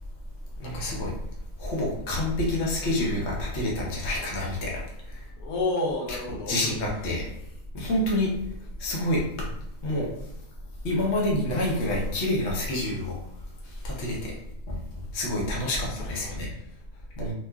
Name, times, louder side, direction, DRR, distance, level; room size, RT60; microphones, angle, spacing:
voice 1, 0.6-1.1 1.6-4.8 5.1-5.2 6.5-7.3 7.7-8.3 8.8-9.2 9.8-10.1 10.8-13.2 13.6-14.3 14.7-14.8 15.1-16.5 17.2-17.3, left 1 dB, 55° left, -3 dB, 1.0 m, -27 dB
voice 2, 5.4-6.7 15.9-17.1, left 2 dB, 85° left, -2 dB, 1.1 m, -32 dB
3.1 x 2.4 x 2.2 m, 0.76 s
omnidirectional pair, 1.5 m